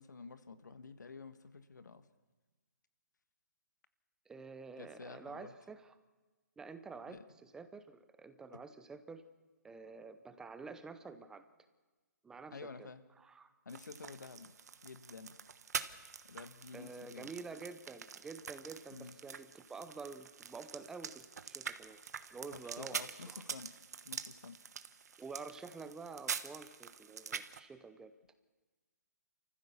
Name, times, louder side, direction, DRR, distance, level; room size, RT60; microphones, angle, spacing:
voice 1, 0.0-2.0 4.8-5.5 7.1-7.2 12.5-13.0 13.6-14.5 14.8-15.3 16.2-17.3 18.9-19.1 22.5-23.7 24.0-24.6, left 4 dB, 85° left, 11 dB, 1.4 m, -50 dB
voice 2, 4.3-5.9 6.6-9.2 9.6-11.4 12.2-12.9 13.2-13.5 16.7-22.0 22.3-23.4 25.2-28.1, right 4 dB, 5° right, 11 dB, 0.7 m, -49 dB
sound 1, 13.7-27.6, right 6 dB, 65° right, 1.2 m, -45 dB
27.5 x 14.5 x 7.1 m, 1.3 s
hypercardioid pair, 150°, 10 cm